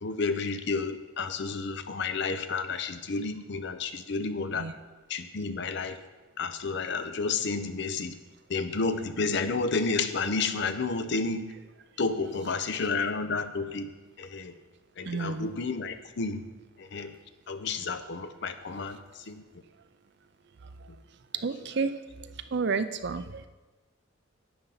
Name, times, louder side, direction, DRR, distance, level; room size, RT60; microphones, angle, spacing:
voice 1, 0.0-4.7 5.1-6.0 6.4-8.1 8.5-11.5 12.0-13.9 14.2-14.5 15.0-16.4 16.8-17.1 17.5-19.0 19.3-19.4, left 4 dB, 60° left, 10 dB, 0.6 m, -31 dB
voice 2, 15.1-15.5 21.4-21.9 22.5-23.5, right 4 dB, 55° right, 11 dB, 0.5 m, -30 dB
11.0 x 8.7 x 4.0 m, 1.2 s
head